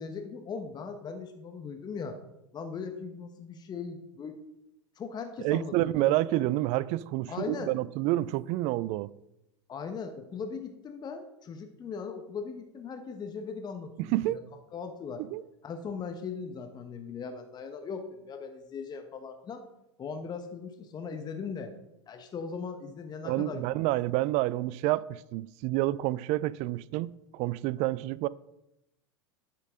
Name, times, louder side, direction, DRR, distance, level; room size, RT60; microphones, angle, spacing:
voice 1, 0.0-2.2 2.5-4.4 5.0-6.1 7.3-7.7 9.7-14.4 14.7-15.2 15.6-19.6 20.0-21.7 22.1-23.6, left 5 dB, 25° left, 1.1 m, -39 dB
voice 2, 5.4-9.1 14.0-14.4 15.2-15.4 23.3-28.3, right 16 dB, 50° right, 0.4 m, -29 dB
10.5 x 7.5 x 3.7 m
hypercardioid pair, 100°, 15 cm